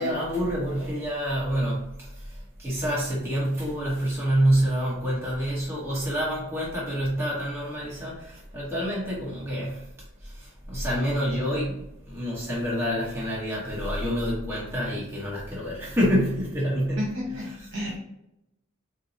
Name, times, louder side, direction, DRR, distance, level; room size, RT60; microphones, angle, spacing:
voice 1, 0.0-9.9 10.2-17.0, equal, 10° right, -7 dB, 1.0 m, -27 dB
voice 2, 17.0-18.0, left 1 dB, 65° right, -4 dB, 1.0 m, -32 dB
4.2 x 2.0 x 2.7 m, 0.84 s
head